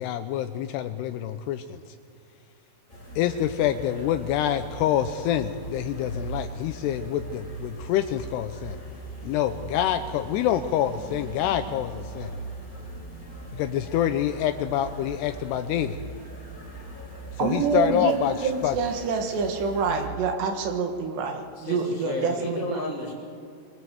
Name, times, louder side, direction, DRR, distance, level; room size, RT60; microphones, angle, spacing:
voice 1, 0.0-1.8 3.2-8.8 9.2-12.3 13.5-16.0 17.4-18.7, left 11 dB, 80° left, 8 dB, 2.7 m, -26 dB
sound 1, 2.9-20.1, right 2 dB, 10° left, 4.6 m, -40 dB
voice 2, 17.4-22.8, right 5 dB, 80° right, 4 dB, 4.1 m, -27 dB
voice 3, 21.5-23.1, left 2 dB, 35° left, -7 dB, 3.8 m, -32 dB
24.0 x 21.0 x 7.8 m, 2.3 s
omnidirectional pair, 4.9 m